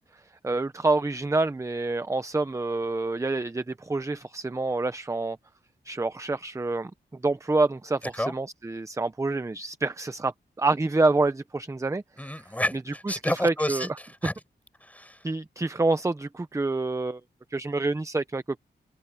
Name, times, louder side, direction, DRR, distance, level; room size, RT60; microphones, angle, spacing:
voice 1, 0.4-5.4 5.9-6.9 7.2-12.0 13.1-13.9 15.2-17.2 17.5-18.6, right 2 dB, 15° right, 0.7 m, -27 dB
voice 2, 12.2-14.3 14.8-15.2, left 1 dB, 10° left, 6.5 m, -30 dB
wide cardioid pair, 110°, 19 cm